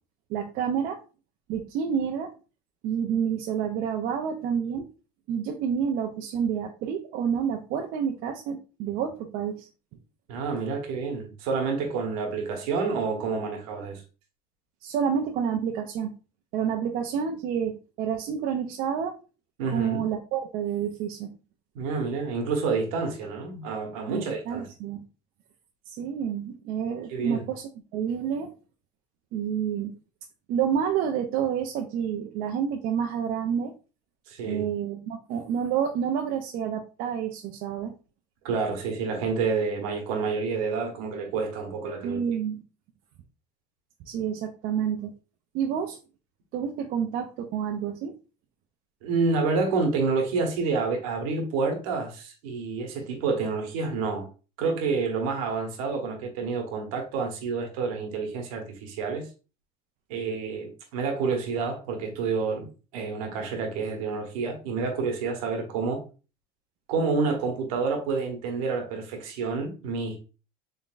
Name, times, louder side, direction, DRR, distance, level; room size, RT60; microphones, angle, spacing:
voice 1, 0.3-1.0 1.5-2.3 2.8-4.9 5.3-9.7 14.8-16.1 16.5-19.2 19.7-21.3 24.1-25.0 25.9-28.5 29.3-29.9 30.5-33.7 34.4-37.9 42.0-42.6 44.1-45.1 45.5-46.0 46.5-48.2, right 8 dB, 55° right, 0.5 m, -29 dB
voice 2, 10.3-14.0 19.6-20.0 21.7-24.7 27.1-27.4 34.3-34.7 38.4-42.2 49.0-54.3 54.6-59.3 60.1-66.0 66.9-70.2, right 4 dB, 90° right, 1.1 m, -28 dB
3.9 x 3.5 x 2.4 m
cardioid pair, 145°, 18 cm